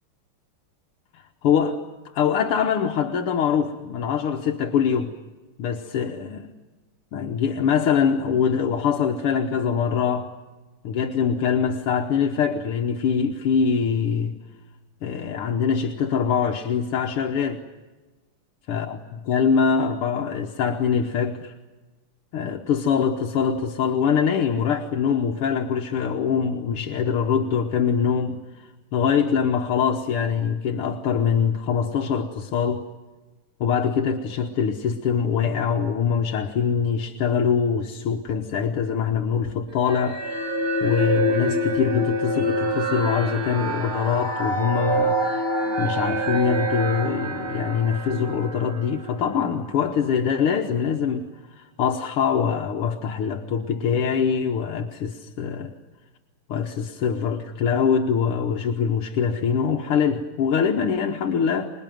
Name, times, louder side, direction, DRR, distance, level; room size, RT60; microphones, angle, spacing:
voice 1, 1.1-1.8 2.1-5.1 5.6-6.5 7.1-10.3 10.8-14.3 15.0-17.6 18.7-21.5 22.3-32.9 33.6-40.5 40.8-45.5 45.8-55.7 56.5-61.7, left 7 dB, 80° left, 2 dB, 2.1 m, -23 dB
sound 1, 39.9-49.4, right 1 dB, 70° right, 4.3 m, -26 dB
26.0 x 21.0 x 9.2 m, 1.2 s
omnidirectional pair, 2.4 m